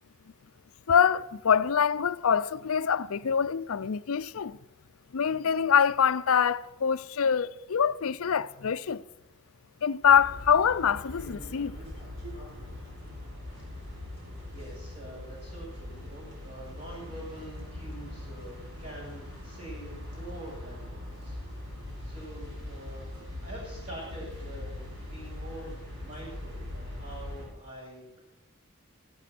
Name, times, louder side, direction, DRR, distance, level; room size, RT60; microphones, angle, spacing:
voice 1, 0.9-4.6 5.1-9.0 9.8-11.8, left 7 dB, 70° left, 0.5 m, -25 dB
sound 1, 10.0-27.4, left 1 dB, 55° right, 6.7 m, -41 dB
voice 2, 14.5-21.4 22.0-23.1 23.4-28.2, right 1 dB, 35° right, 7.6 m, -45 dB
16.5 x 12.5 x 6.1 m
head